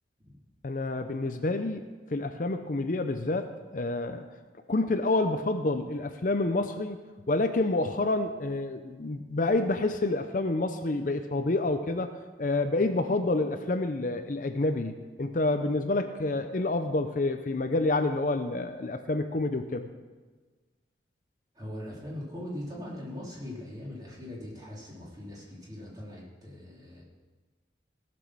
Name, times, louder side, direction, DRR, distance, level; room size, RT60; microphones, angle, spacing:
voice 1, 0.6-1.8 2.1-4.3 4.7-7.0 7.3-12.1 12.4-19.9, left 2 dB, 45° left, 8 dB, 0.6 m, -28 dB
voice 2, 21.5-27.0, left 1 dB, 20° right, -5 dB, 2.9 m, -41 dB
17.0 x 6.1 x 6.2 m, 1.3 s
head